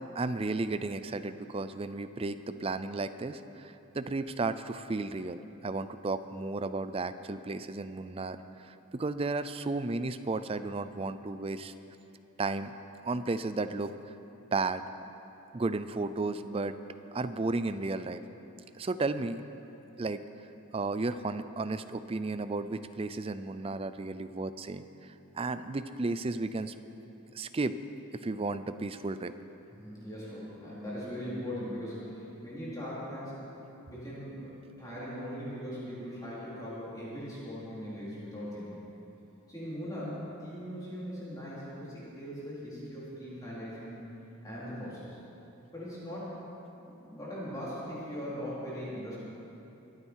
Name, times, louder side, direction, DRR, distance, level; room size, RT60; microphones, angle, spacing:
voice 1, 0.1-11.7 12.4-12.7 13.0-13.9 14.5-14.8 15.5-16.8 17.1-18.2 18.8-19.4 20.0-20.2 20.7-24.8 25.3-26.7 27.3-27.8 28.2-29.3, right 3 dB, 25° right, 12 dB, 0.4 m, -33 dB
voice 2, 29.8-33.4 33.8-38.7 39.5-44.0 44.4-45.2 45.7-46.3 46.8-49.2, equal, 15° left, -9 dB, 4.1 m, -40 dB
24.5 x 8.8 x 4.7 m, 3.0 s
head